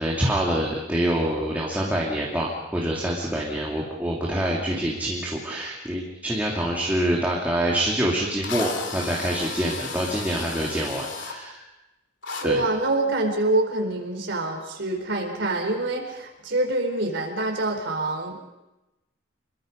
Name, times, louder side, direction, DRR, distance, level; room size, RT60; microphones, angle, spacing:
voice 1, 0.0-11.6 12.4-12.6, right 1 dB, 10° right, -3 dB, 2.7 m, -26 dB
Drill, 7.8-7.9 8.4-11.4 12.2-12.5, left 5 dB, 65° left, 3.0 m, -34 dB
voice 2, 12.4-18.5, right 2 dB, 60° right, 2 dB, 4.4 m, -26 dB
27.5 x 22.5 x 5.3 m, 1.0 s
head